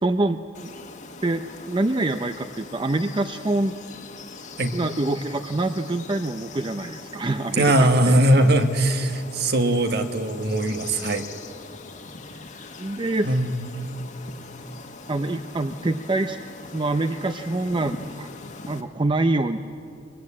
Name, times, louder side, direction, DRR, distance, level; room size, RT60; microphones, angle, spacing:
voice 1, 0.0-0.7 1.2-3.8 4.7-8.2 12.8-13.4 15.1-16.4 16.7-18.3 18.7-19.6, right 2 dB, 25° right, 8 dB, 0.5 m, -25 dB
sound 1, 0.6-18.8, left 3 dB, 40° left, 1.4 m, -41 dB
voice 2, 7.6-11.3 13.3-13.9, right 1 dB, 55° right, 7 dB, 1.5 m, -20 dB
22.5 x 22.5 x 8.6 m, 2.6 s
head